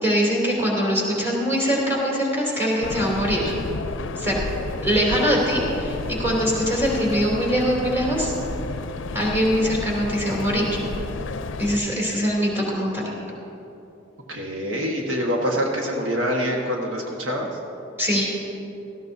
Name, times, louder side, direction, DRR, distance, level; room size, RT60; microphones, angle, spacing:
voice 1, 0.0-3.5 4.2-4.4 4.8-8.3 9.1-10.7 11.6-13.1 18.0-18.2, equal, 15° right, -5 dB, 2.9 m, -22 dB
sound 1, 2.8-11.8, left 3 dB, 70° left, 0.5 m, -31 dB
voice 2, 14.3-17.5, equal, 70° right, -2 dB, 1.5 m, -25 dB
17.0 x 14.5 x 2.7 m, 2.9 s
head